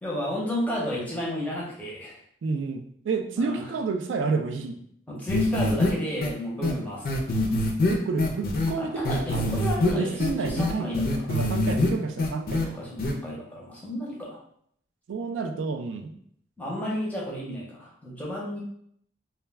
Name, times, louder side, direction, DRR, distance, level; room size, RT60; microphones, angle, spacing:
voice 1, 0.0-2.2 3.4-3.6 5.1-7.4 8.8-11.2 12.6-14.4 16.6-18.6, equal, 10° left, -5 dB, 0.6 m, -32 dB
voice 2, 2.4-4.8 7.9-10.9 11.3-12.7 15.1-16.1, right 4 dB, 85° right, 6 dB, 0.3 m, -30 dB
sound 1, 5.3-5.9 6.2-6.3 6.6-6.7 7.1-8.7 9.0-9.9 10.2-11.9 12.2-12.7 13.0-13.1, left 2 dB, 50° left, 0.4 m, -24 dB
2.2 x 2.1 x 3.3 m, 0.67 s
head